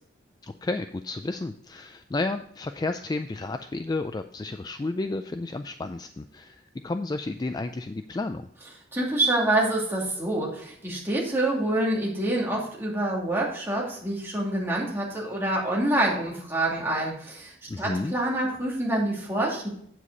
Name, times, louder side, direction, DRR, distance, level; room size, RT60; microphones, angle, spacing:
voice 1, 0.4-8.5 17.7-18.2, left 2 dB, 20° left, 8 dB, 0.3 m, -32 dB
voice 2, 8.9-19.7, right 1 dB, 10° right, -4 dB, 2.5 m, -26 dB
8.2 x 7.5 x 4.0 m, 0.65 s
head